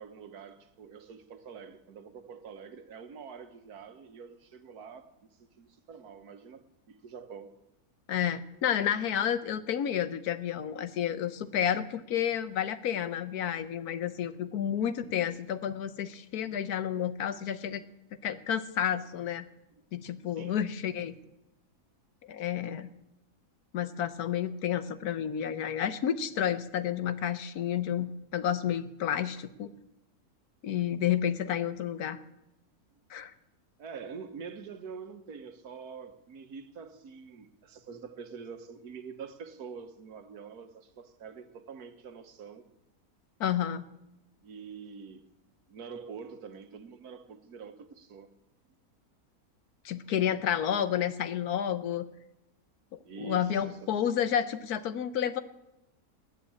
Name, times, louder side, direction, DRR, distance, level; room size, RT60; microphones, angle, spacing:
voice 1, 0.0-5.1 5.4-7.6 10.9-11.0 20.3-20.6 33.8-42.7 44.4-45.3 45.7-48.3 53.0-53.9, right 6 dB, 85° right, 1.6 m, -46 dB
voice 2, 8.1-17.8 18.2-19.4 19.9-21.1 22.2-22.9 23.7-29.7 30.6-32.2 33.1-33.3 43.4-43.9 49.8-52.1 53.2-55.4, left 9 dB, 80° left, 1.4 m, -30 dB
20.0 x 7.5 x 8.7 m
omnidirectional pair, 1.6 m